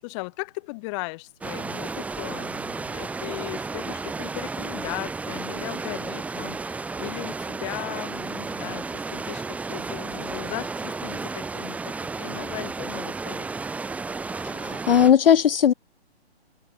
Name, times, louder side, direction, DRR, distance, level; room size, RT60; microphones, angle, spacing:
voice 1, 0.0-13.5, left 28 dB, 25° left, 6.1 m, -37 dB
sound 1, 1.4-15.1, right 4 dB, 5° right, 1.6 m, -33 dB
voice 2, 14.4-15.7, left 9 dB, 60° left, 1.0 m, -18 dB
hypercardioid pair, 150°, 33 cm